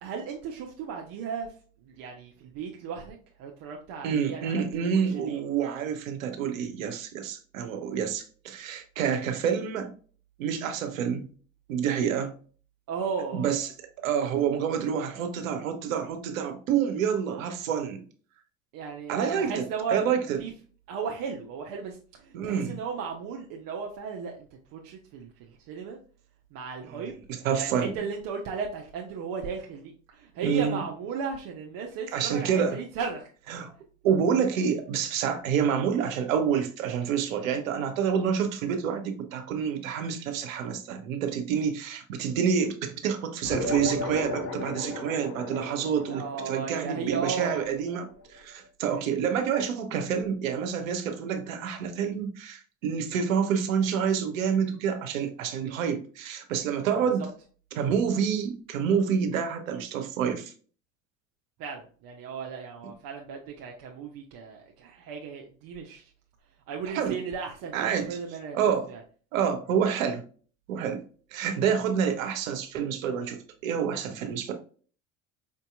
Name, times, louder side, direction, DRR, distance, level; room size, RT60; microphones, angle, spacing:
voice 1, 0.0-1.5 1.9-5.4 12.9-13.5 18.7-20.5 20.9-26.0 26.5-27.1 27.5-33.2 46.1-47.7 48.9-49.2 56.9-57.1 61.6-66.1 66.7-68.6 68.9-69.0 71.7-71.8, right 5 dB, 60° right, 0.8 m, -35 dB
voice 2, 4.0-9.9 10.4-11.3 11.7-12.3 13.3-13.7 14.0-18.0 19.1-20.4 22.3-22.8 27.4-27.9 30.4-30.8 32.1-32.8 33.5-33.7 34.0-57.3 57.7-60.5 62.8-62.9 66.9-67.2 67.7-68.2 68.5-68.9 69.3-70.2 70.7-71.0 71.3-74.5, right 7 dB, 85° right, 0.8 m, -28 dB
sound 1, 43.4-48.3, left 2 dB, 40° left, 1.3 m, -35 dB
5.3 x 2.7 x 2.3 m
hypercardioid pair, 70°, 39 cm